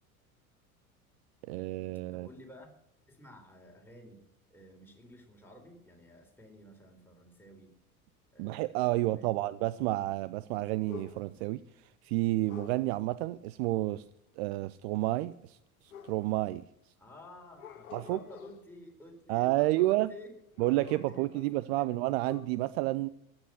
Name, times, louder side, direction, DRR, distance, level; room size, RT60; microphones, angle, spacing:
voice 1, 1.4-2.3 8.4-14.0 14.4-15.6 16.0-16.6 17.9-18.2 19.3-20.1 20.6-23.1, right 18 dB, 45° right, 18 dB, 0.5 m, -30 dB
voice 2, 2.1-2.7 3.1-4.2 4.5-7.7 8.3-9.5 17.0-20.3 20.8-21.9, left 1 dB, 5° left, 1 dB, 4.0 m, -52 dB
sound 1, 10.9-11.5 12.5-12.9 15.9-16.6 17.5-18.7 19.8-20.2 20.6-21.7 22.0-22.5, left 8 dB, 75° left, 1.2 m, -49 dB
15.0 x 10.5 x 7.7 m, 0.77 s
figure-of-eight pair, 70°, 43 cm